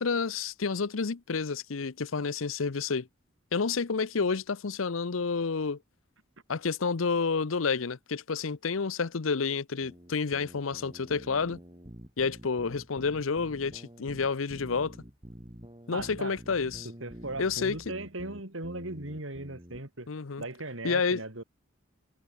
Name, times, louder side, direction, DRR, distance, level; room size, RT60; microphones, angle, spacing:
voice 1, 0.0-3.1 3.5-5.8 6.5-11.6 12.2-15.0 15.9-16.9 17.4-17.8 20.1-20.4 20.8-21.2, left 5 dB, 75° left, 0.7 m, -29 dB
sound 1, 9.8-19.8, equal, 25° right, 5.9 m, -48 dB
voice 2, 15.9-16.4 16.8-20.1 20.4-21.4, right 2 dB, 70° right, 3.8 m, -38 dB
head